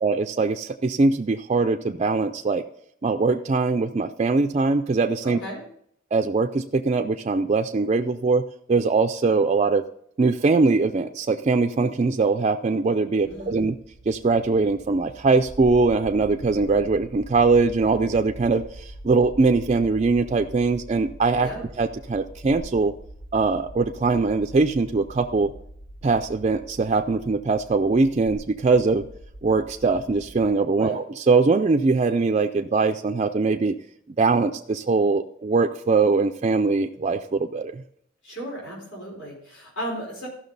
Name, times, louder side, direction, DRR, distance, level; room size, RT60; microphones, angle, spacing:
voice 1, 0.0-2.6 3.0-5.4 6.1-8.4 8.7-9.8 10.2-13.7 14.1-21.5 21.8-22.9 23.3-25.5 26.0-29.0 29.4-33.8 34.2-37.8, right 3 dB, 35° right, 5 dB, 0.4 m, -22 dB
voice 2, 5.2-5.6 13.2-13.7 21.4-21.7 30.8-31.0 38.2-40.3, right 1 dB, 75° left, -3 dB, 4.5 m, -35 dB
sound 1, 13.2-30.4, right 1 dB, 90° left, 2.9 m, -43 dB
14.5 x 6.1 x 4.0 m, 0.69 s
head